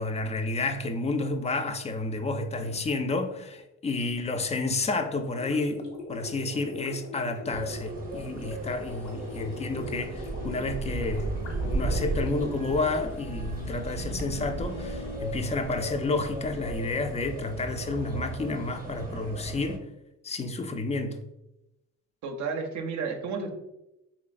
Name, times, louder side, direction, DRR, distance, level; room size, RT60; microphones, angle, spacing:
voice 1, 0.0-11.3 11.6-19.8 20.2-21.2, left 3 dB, 25° left, 8 dB, 0.3 m, -30 dB
Gurgling, 5.3-13.7, left 1 dB, 85° left, 1.3 m, -41 dB
sound 1, 7.5-19.8, right 2 dB, 30° right, 0.7 m, -35 dB
sound 2, 8.8-15.2, left 3 dB, 60° left, 0.6 m, -44 dB
voice 2, 22.2-23.5, right 5 dB, 70° right, 3 dB, 0.5 m, -32 dB
4.0 x 3.0 x 2.4 m, 0.91 s
cardioid pair, 90°, 30 cm